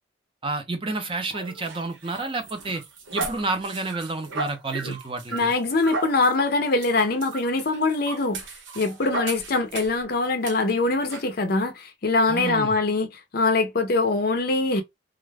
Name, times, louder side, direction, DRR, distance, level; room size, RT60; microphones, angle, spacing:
voice 1, 0.4-2.8 3.1-5.5 12.3-12.8, right 3 dB, 25° right, 0.6 m, -30 dB
sound 1, 1.3-10.0 10.4-10.6 11.1-11.3, right 3 dB, 75° right, 0.8 m, -35 dB
voice 2, 5.3-8.4 8.8-13.1 13.3-14.8, left 3 dB, 50° left, 0.5 m, -23 dB
2.4 x 2.1 x 3.3 m
head